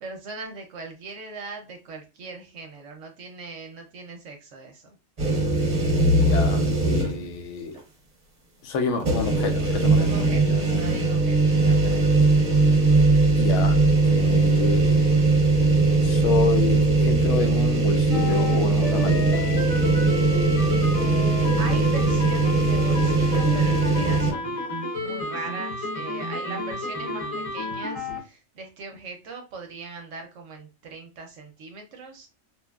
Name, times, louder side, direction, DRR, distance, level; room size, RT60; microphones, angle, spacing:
voice 1, 0.0-4.8 10.0-12.3 20.9-24.6 25.0-32.3, right 3 dB, 70° right, 0.8 m, -40 dB
sound 1, 5.2-7.3 7.8-7.9 9.0-24.3, right 3 dB, 35° right, 0.7 m, -20 dB
voice 2, 6.2-7.8 8.6-10.1 13.4-13.8 14.0-15.2 16.0-19.5, left 4 dB, 65° left, 0.8 m, -28 dB
sound 2, 18.1-28.2, left 1 dB, 30° left, 0.8 m, -31 dB
3.0 x 2.2 x 2.2 m
omnidirectional pair, 1.4 m